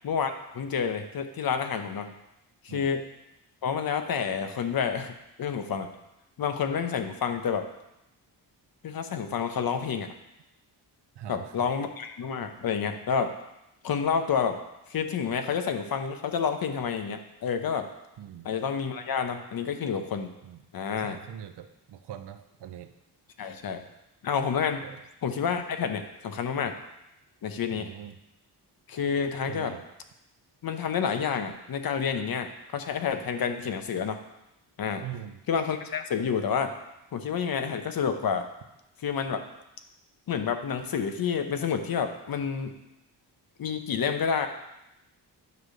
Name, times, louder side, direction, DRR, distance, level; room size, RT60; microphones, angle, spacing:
voice 1, 0.0-2.1 2.6-3.0 3.6-5.1 5.4-5.9 6.4-7.7 8.8-10.1 11.3-13.3 13.8-14.6 14.9-17.9 18.4-20.3 20.7-21.2 23.4-23.8 24.2-24.8 25.2-26.7 27.4-27.9 28.9-29.7 30.6-34.2 34.8-35.0 35.5-36.7 37.1-38.5 39.0-39.4 40.3-42.7 43.6-44.5, left 6 dB, 55° left, 7 dB, 0.8 m, -29 dB
voice 2, 11.2-11.5 18.2-18.5 20.4-20.6 21.0-22.9 24.8-25.0 27.7-28.2 29.5-29.8 35.0-35.4, right 10 dB, 70° right, 10 dB, 0.6 m, -42 dB
9.4 x 3.2 x 6.4 m, 0.87 s
wide cardioid pair, 140°, 43 cm